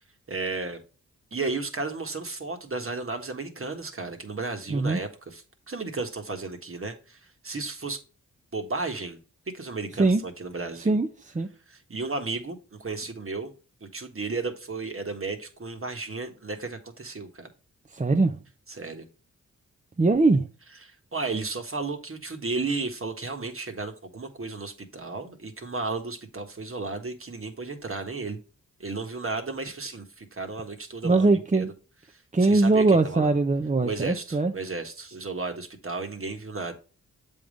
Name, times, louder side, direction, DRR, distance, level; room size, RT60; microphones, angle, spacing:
voice 1, 0.3-0.8 1.3-7.2 7.4-8.0 8.5-9.2 9.5-11.0 11.7-13.5 13.8-17.5 18.8-19.0 20.8-28.4 28.8-31.7 32.4-33.3 33.8-36.7, right 3 dB, 40° right, 1.5 m, -33 dB
voice 2, 4.7-5.0 9.9-10.2 10.8-11.5 17.9-18.4 20.0-20.5 31.0-31.7 32.3-34.5, right 3 dB, 20° right, 0.7 m, -22 dB
7.6 x 3.7 x 5.1 m
cardioid pair, 50°, 33 cm